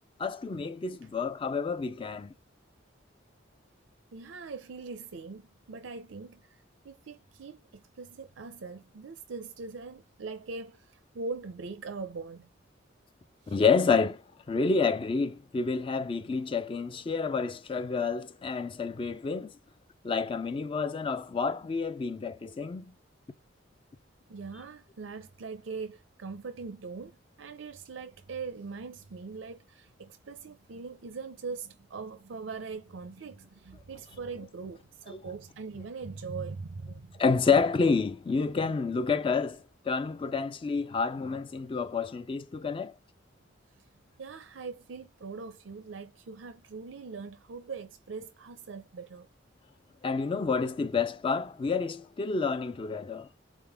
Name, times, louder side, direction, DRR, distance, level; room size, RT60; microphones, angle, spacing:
voice 1, 0.2-2.3 13.5-14.2 14.5-19.5 20.0-22.9 37.2-42.9 50.0-53.3, left 5 dB, 30° left, 0.3 m, -29 dB
voice 2, 4.1-12.5 13.4-13.6 24.3-37.1 38.6-38.7 44.2-49.3, right 4 dB, 90° right, 0.6 m, -41 dB
4.2 x 3.6 x 3.3 m
head